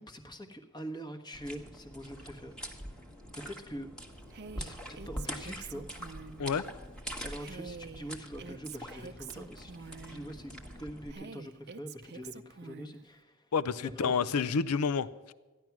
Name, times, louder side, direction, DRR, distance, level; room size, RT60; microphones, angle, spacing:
voice 1, 0.0-2.6 3.3-3.9 4.6-5.9 6.2-6.4 7.2-13.5 13.8-14.5, equal, 20° left, 5 dB, 1.3 m, -44 dB
sound 1, 1.3-11.1, equal, 5° left, 1.4 m, -44 dB
Female speech woman speaking, 4.3-6.5 7.4-10.3 11.1-13.0, right 5 dB, 50° right, 0.6 m, -47 dB
voice 2, 13.5-15.3, left 5 dB, 90° left, 16 dB, 0.5 m, -29 dB
14.5 x 10.5 x 6.0 m, 1.3 s
head